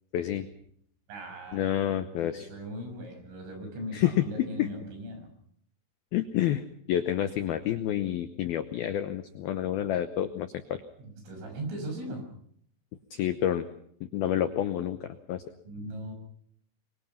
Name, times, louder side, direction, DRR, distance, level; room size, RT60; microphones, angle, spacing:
voice 1, 0.1-0.5 1.5-2.5 3.9-4.7 6.1-6.6 6.9-10.8 13.1-13.7 14.0-15.4, left 11 dB, 80° left, 10 dB, 2.2 m, -29 dB
voice 2, 1.1-1.7 2.2-5.3 11.0-12.3 15.7-16.1, right 1 dB, 75° right, 5 dB, 8.8 m, -39 dB
24.5 x 23.5 x 5.8 m, 0.67 s
omnidirectional pair, 5.8 m